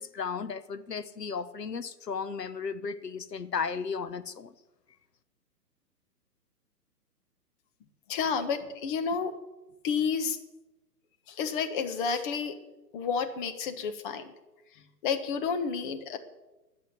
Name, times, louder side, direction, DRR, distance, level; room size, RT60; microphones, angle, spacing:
voice 1, 0.0-4.5, left 5 dB, 80° left, 12 dB, 1.0 m, -35 dB
voice 2, 8.1-9.3 9.8-10.4 11.3-12.5 12.9-14.3 14.7-16.2, left 6 dB, 30° left, 8 dB, 1.4 m, -30 dB
11.5 x 7.6 x 9.7 m, 1.0 s
figure-of-eight pair, 130°, 48 cm